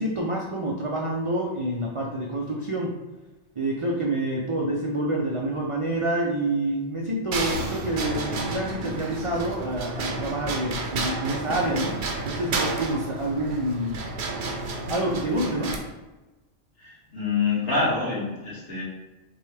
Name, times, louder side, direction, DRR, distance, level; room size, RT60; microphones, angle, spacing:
voice 1, 0.0-2.9 3.6-11.9 12.2-14.0 14.9-15.8, right 1 dB, 45° right, -3 dB, 0.4 m, -27 dB
sound 1, 7.3-15.8, right 3 dB, 65° right, 0.9 m, -31 dB
voice 2, 16.8-18.8, left 4 dB, 55° left, -7 dB, 1.8 m, -26 dB
6.0 x 2.3 x 3.3 m, 1.1 s
omnidirectional pair, 1.3 m